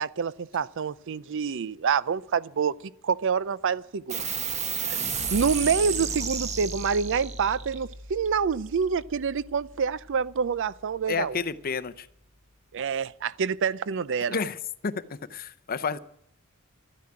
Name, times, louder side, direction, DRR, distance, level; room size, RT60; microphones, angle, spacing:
voice 1, 0.0-2.7 3.0-4.3 4.9-5.0 5.3-11.4 12.7-14.4, right 6 dB, 60° right, 0.5 m, -27 dB
sound 1, 4.1-11.0, right 5 dB, 30° right, 1.1 m, -34 dB
voice 2, 11.1-12.1 14.3-14.6 14.8-16.0, left 5 dB, 45° left, 0.6 m, -30 dB
12.5 x 9.4 x 8.7 m
head